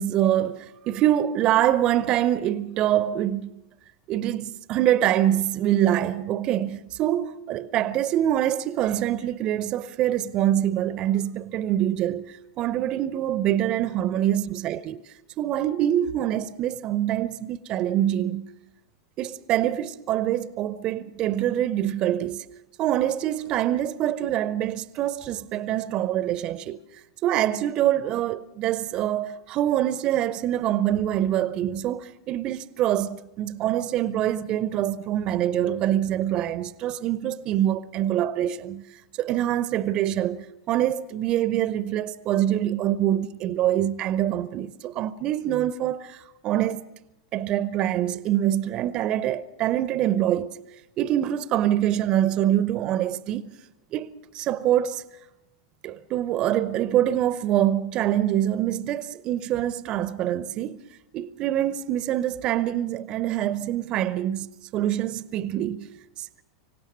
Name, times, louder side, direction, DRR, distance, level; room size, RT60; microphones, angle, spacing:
voice 1, 0.0-3.5 4.1-15.0 15.4-18.5 19.2-22.5 22.8-46.8 47.3-50.6 51.0-53.4 53.9-55.0 55.8-60.8 61.1-65.9 66.2-66.3, right 12 dB, 35° right, 0.6 m, -25 dB
25.0 x 17.0 x 6.3 m
figure-of-eight pair, 85°, 2 cm